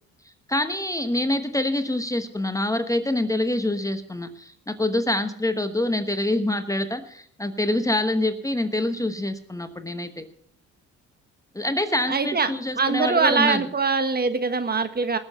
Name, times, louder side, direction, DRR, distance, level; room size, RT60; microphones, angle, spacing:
voice 1, 0.5-10.2 11.5-13.6, left 1 dB, 10° left, 8 dB, 1.1 m, -26 dB
voice 2, 12.1-12.5 12.8-15.2, right 4 dB, 30° right, 10 dB, 1.4 m, -22 dB
19.5 x 7.1 x 6.7 m, 0.64 s
cardioid pair, 90°, 30 cm